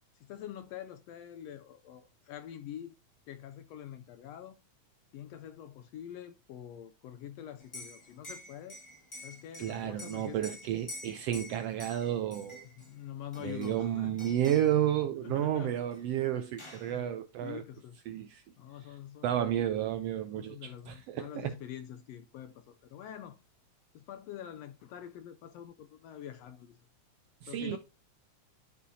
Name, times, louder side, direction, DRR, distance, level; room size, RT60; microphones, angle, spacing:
voice 1, 0.1-2.9 3.3-4.6 5.1-8.8 9.2-10.9 12.8-14.2 15.2-15.8 16.9-18.0 18.6-19.7 20.3-23.4 23.9-26.8 27.5-27.8, left 10 dB, 80° left, 1.5 m, -46 dB
Liquid, 7.6-12.9 13.3-13.9 14.2-14.8 15.9-16.0 16.3-16.9, left 2 dB, 30° left, 0.5 m, -48 dB
voice 2, 9.6-12.6 13.4-17.6 18.1-18.4 19.2-21.5 27.4-27.8, right 11 dB, 80° right, 1.4 m, -31 dB
11.5 x 5.5 x 2.7 m
omnidirectional pair, 3.4 m